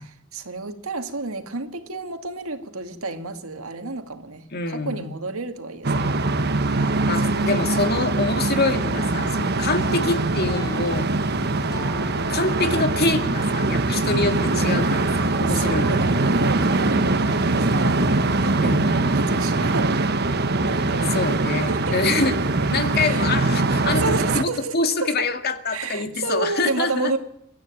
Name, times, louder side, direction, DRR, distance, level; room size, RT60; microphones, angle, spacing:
voice 1, 0.0-6.1 6.7-7.0 7.4-7.5 9.6-9.9 15.5-18.1 18.4-20.2 20.6-21.2 21.7-22.1 23.0-23.3 23.9-25.3 25.7-27.2, right 3 dB, 85° right, 7 dB, 2.2 m, -31 dB
voice 2, 4.5-5.2 7.1-11.1 12.3-16.1 18.6-18.9 21.1-22.4 22.7-24.0 24.3-27.1, left 3 dB, 50° left, 7 dB, 2.2 m, -25 dB
sound 1, 5.8-24.4, right 2 dB, 50° right, 1.3 m, -22 dB
sound 2, 9.7-20.7, left 1 dB, 20° left, 4.7 m, -41 dB
24.5 x 13.0 x 9.1 m, 0.75 s
head